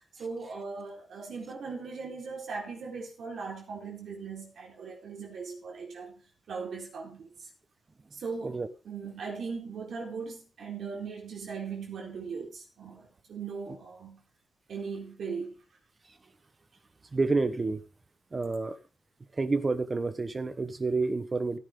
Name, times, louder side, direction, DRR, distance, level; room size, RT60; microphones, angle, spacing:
voice 1, 0.2-6.2 6.5-7.5 8.1-8.6 8.8-14.2 14.7-15.6, right 5 dB, 60° right, 4.1 m, -39 dB
voice 2, 17.1-17.8 18.3-18.8 19.4-21.6, right 3 dB, 25° right, 1.1 m, -29 dB
16.0 x 10.5 x 3.8 m
wide cardioid pair, 180°, 0 cm